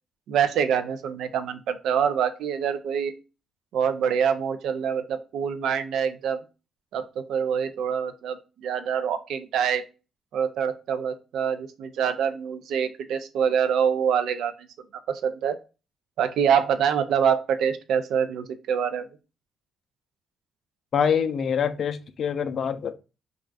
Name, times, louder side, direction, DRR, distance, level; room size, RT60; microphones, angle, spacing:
voice 1, 0.3-3.1 3.7-6.4 6.9-9.8 10.3-14.5 15.1-15.6 16.2-19.1, right 7 dB, 80° right, 0.4 m, -25 dB
voice 2, 20.9-22.9, left 7 dB, 60° left, 0.3 m, -25 dB
2.4 x 2.3 x 3.2 m
cardioid pair, 90°, 0 cm